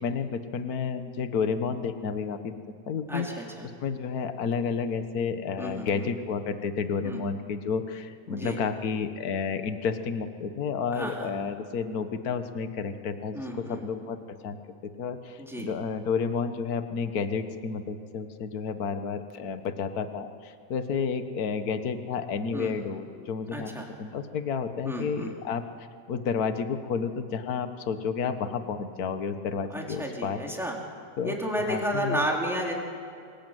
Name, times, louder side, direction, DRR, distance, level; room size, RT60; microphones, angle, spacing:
voice 1, 0.0-3.3 3.8-13.4 13.7-14.2 14.4-23.7 24.0-25.6 26.1-30.4 31.2-31.4 31.7-32.2, left 6 dB, 50° left, 9 dB, 1.1 m, -31 dB
voice 2, 3.1-3.7 5.6-6.1 7.0-7.2 8.3-8.6 10.9-11.3 13.3-13.8 15.4-15.7 22.5-22.7 23.5-23.9 24.8-25.3 29.7-30.8 31.2-32.7, equal, ahead, -2 dB, 4.0 m, -32 dB
26.5 x 21.5 x 9.3 m, 2.4 s
omnidirectional pair, 3.5 m